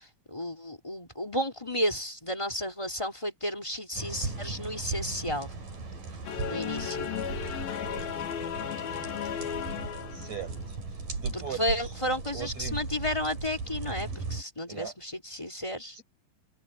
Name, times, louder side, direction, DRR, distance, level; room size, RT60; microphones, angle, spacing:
voice 1, 0.0-5.5 6.5-7.1 11.3-16.0, equal, 10° left, 2.0 m, -32 dB
sound 1, 3.9-14.4, right 4 dB, 65° right, 7.3 m, -37 dB
sound 2, 6.2-10.7, left 8 dB, 90° left, 4.0 m, -35 dB
voice 2, 10.1-10.8 11.2-11.8 12.3-12.8 14.7-14.9 15.9-16.0, right 7 dB, 50° right, 9.3 m, -39 dB
omnidirectional pair, 4.1 m